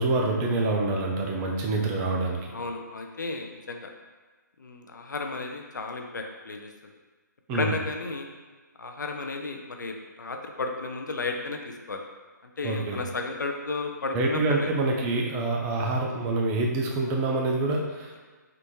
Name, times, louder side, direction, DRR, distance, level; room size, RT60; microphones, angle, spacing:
voice 1, 0.0-2.5 7.5-7.7 12.6-13.0 14.1-18.2, right 2 dB, 20° right, 0 dB, 0.4 m, -26 dB
voice 2, 2.5-3.9 4.6-6.7 7.5-8.3 8.8-12.0 12.6-14.7, left 3 dB, 70° left, 3 dB, 0.5 m, -33 dB
3.4 x 2.5 x 3.0 m, 1.3 s
figure-of-eight pair, 140°, 10 cm